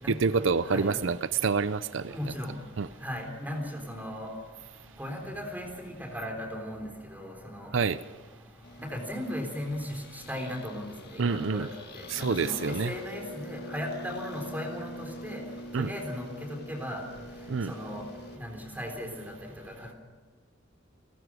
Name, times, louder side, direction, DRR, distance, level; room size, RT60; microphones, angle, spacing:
voice 1, 0.1-2.2 2.8-2.9 7.7-8.0 11.2-11.7 12.1-12.9 15.7-15.9 17.5-17.7, right 5 dB, 75° right, 15 dB, 0.6 m, -27 dB
voice 2, 2.1-2.5 3.0-4.3 5.0-6.8 7.1-7.7 8.8-10.0 10.3-11.7 11.9-12.6 12.8-15.4 15.8-16.3 16.7-17.0 17.7-18.0 18.4-19.2, equal, 10° right, 2 dB, 3.9 m, -36 dB
sound 1, 8.6-18.4, left 1 dB, 55° left, 1.5 m, -44 dB
30.0 x 14.5 x 6.3 m, 1.5 s
head